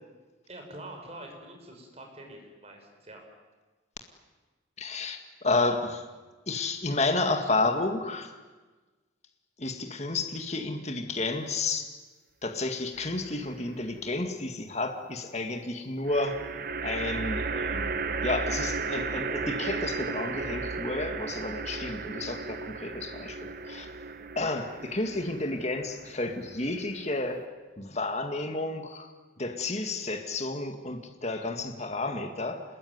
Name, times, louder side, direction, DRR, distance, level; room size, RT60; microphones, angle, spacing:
voice 1, 0.5-3.2, right 1 dB, 35° right, 3 dB, 5.7 m, -45 dB
voice 2, 4.8-6.0 6.5-8.3 9.6-11.8 12.4-16.4 16.8-23.9 24.4-27.4 27.8-29.1 29.4-32.6, left 2 dB, 35° left, 5 dB, 2.0 m, -31 dB
sound 1, 13.0-13.6 16.1-27.4, right 4 dB, 50° right, 1.2 m, -35 dB
26.5 x 21.5 x 9.6 m, 1.3 s
head